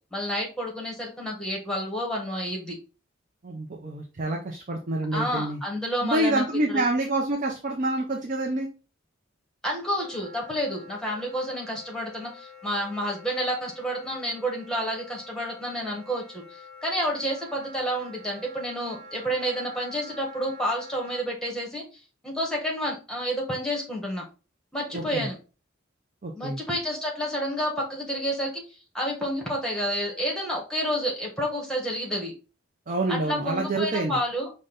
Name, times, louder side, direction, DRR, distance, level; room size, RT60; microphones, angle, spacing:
voice 1, 0.1-2.8 5.1-6.8 9.6-24.2 24.7-25.4 26.3-32.3 33.1-34.5, equal, 5° left, -1 dB, 1.0 m, -30 dB
voice 2, 3.4-5.6 6.0-8.7 24.9-25.3 26.2-26.6 32.9-34.2, right 2 dB, 40° right, 2 dB, 0.5 m, -27 dB
Wind instrument woodwind instrument, 10.0-21.2, left 1 dB, 20° right, 2.3 m, -47 dB
5.0 x 2.2 x 3.9 m, 0.34 s
head